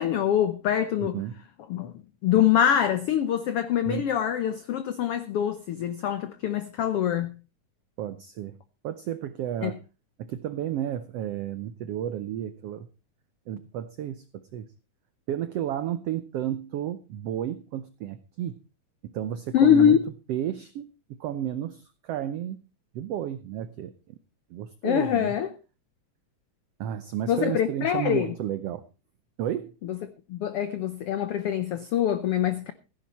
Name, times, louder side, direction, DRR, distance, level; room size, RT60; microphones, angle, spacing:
voice 1, 0.0-1.2 1.7-1.9 2.2-7.3 9.6-9.7 19.5-20.0 24.8-25.5 27.3-28.3 29.8-30.0 30.3-32.7, left 9 dB, 85° left, 1.3 m, -24 dB
voice 2, 1.0-1.3 3.8-4.1 8.0-8.6 8.8-9.8 10.2-12.9 13.5-14.2 14.5-14.7 15.3-18.6 19.0-20.0 20.3-20.9 21.2-22.6 22.9-24.2 24.5-25.3 26.8-28.8 29.4-29.7, right 11 dB, 90° right, 1.3 m, -32 dB
15.5 x 10.5 x 4.2 m
omnidirectional pair, 3.8 m